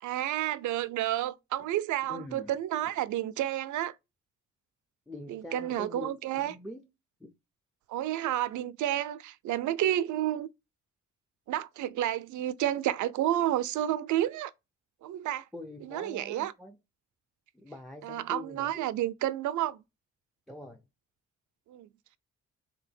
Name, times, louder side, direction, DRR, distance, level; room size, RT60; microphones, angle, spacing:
voice 1, 0.0-3.9 5.3-6.5 7.9-10.5 11.5-14.5 15.0-15.4 15.8-16.5 18.0-19.8 21.7-21.9, right 13 dB, 80° right, 0.4 m, -30 dB
voice 2, 2.1-2.5 5.1-6.9 7.2-7.3 15.5-16.7 17.5-18.8 20.5-20.8, left 1 dB, ahead, 0.4 m, -44 dB
3.4 x 2.8 x 4.2 m
cardioid pair, 120°, 29 cm